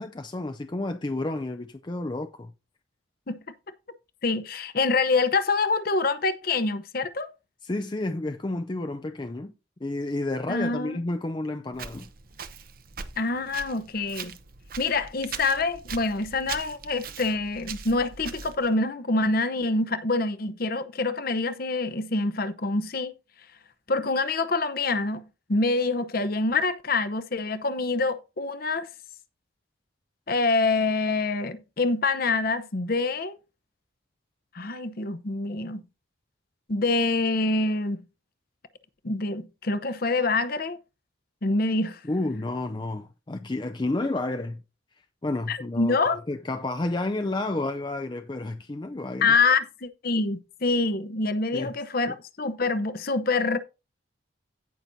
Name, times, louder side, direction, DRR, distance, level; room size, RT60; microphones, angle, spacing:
voice 1, 0.0-2.5 7.6-9.5 9.8-12.1 42.1-44.6 45.2-49.3 51.5-51.7 52.1-52.2, left 2 dB, 20° left, 0.4 m, -31 dB
voice 2, 4.2-7.3 10.5-11.0 13.2-14.3 14.8-23.1 23.9-25.2 25.5-28.9 30.3-33.3 34.5-35.8 36.7-38.0 39.0-40.8 41.4-42.0 45.5-46.2 49.2-53.6, left 3 dB, 45° left, 0.8 m, -26 dB
Walk footsteps, 11.7-18.7, right 6 dB, 45° right, 0.8 m, -41 dB
17.0 x 5.9 x 2.7 m
head